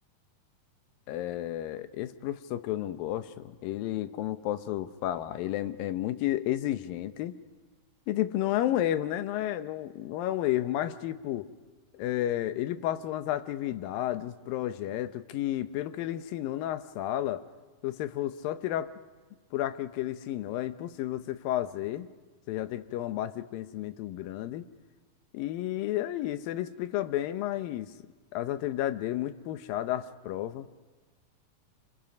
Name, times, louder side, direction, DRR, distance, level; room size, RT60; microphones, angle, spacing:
voice 1, 1.1-7.3 8.1-11.5 11.9-17.5 17.8-18.9 19.5-22.1 22.5-24.7 25.3-27.9 28.3-30.7, left 13 dB, 85° left, 11 dB, 2.6 m, -32 dB
26.5 x 26.5 x 5.2 m, 1.3 s
omnidirectional pair, 4.0 m